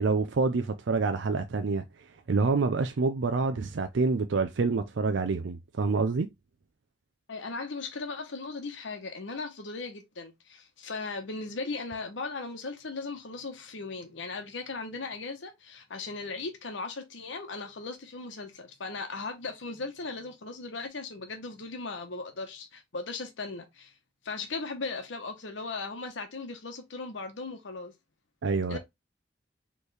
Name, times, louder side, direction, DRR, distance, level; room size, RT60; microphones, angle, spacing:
voice 1, 0.0-1.8 2.3-6.3 28.4-28.8, right 4 dB, 85° right, 0.5 m, -27 dB
voice 2, 7.3-23.9 24.2-27.9 28.7-28.8, left 3 dB, 90° left, 0.9 m, -37 dB
4.4 x 3.2 x 3.3 m
head